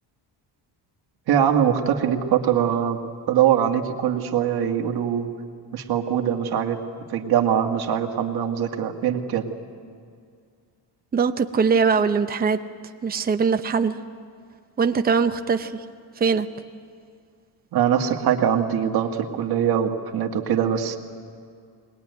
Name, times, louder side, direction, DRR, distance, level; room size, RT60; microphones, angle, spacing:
voice 1, 1.3-3.0 3.3-5.3 5.7-6.8 7.1-9.5 17.7-21.0, right 9 dB, 60° right, 3 dB, 1.9 m, -22 dB
voice 2, 11.1-12.6 13.0-14.0 14.8-15.8 16.2-16.5, right 5 dB, 20° right, 8 dB, 0.7 m, -21 dB
21.0 x 21.0 x 9.5 m, 2.2 s
cardioid pair, 155°, 42 cm